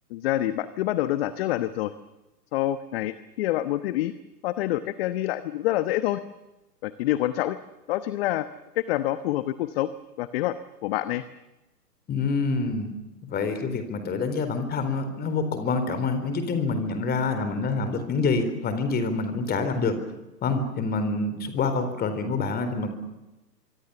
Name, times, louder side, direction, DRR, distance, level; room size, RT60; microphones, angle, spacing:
voice 1, 0.1-1.9 2.5-4.1 4.4-6.2 6.8-7.6 7.9-8.5 8.7-9.9 10.2-10.6 10.8-11.2, left 14 dB, 35° left, 13 dB, 1.1 m, -26 dB
voice 2, 12.1-12.9 13.2-20.0 20.4-23.0, left 4 dB, 20° left, 10 dB, 4.1 m, -26 dB
25.5 x 23.5 x 7.0 m, 1.0 s
hypercardioid pair, 125°, 49 cm